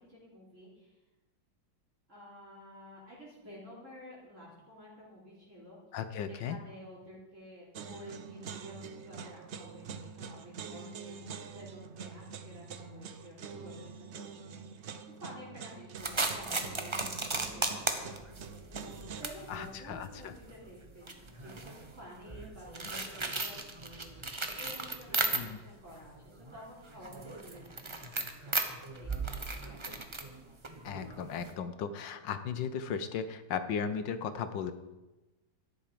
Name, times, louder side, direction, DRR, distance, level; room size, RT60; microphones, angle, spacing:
voice 1, 0.1-0.9 2.1-5.8 6.3-18.2 18.5-18.6 19.2-24.0 24.6-29.1 29.6-30.2, equal, 40° right, -6 dB, 3.8 m, -51 dB
voice 2, 5.9-6.6 19.5-20.3 25.3-25.6 30.8-34.7, left 7 dB, 75° left, 10 dB, 1.5 m, -36 dB
sound 1, 7.7-19.2, right 6 dB, 60° right, 0.7 m, -45 dB
sound 2, 16.0-25.8 26.1-31.5, right 3 dB, 25° right, 0.7 m, -37 dB
13.0 x 11.0 x 5.1 m, 1.1 s
omnidirectional pair, 2.0 m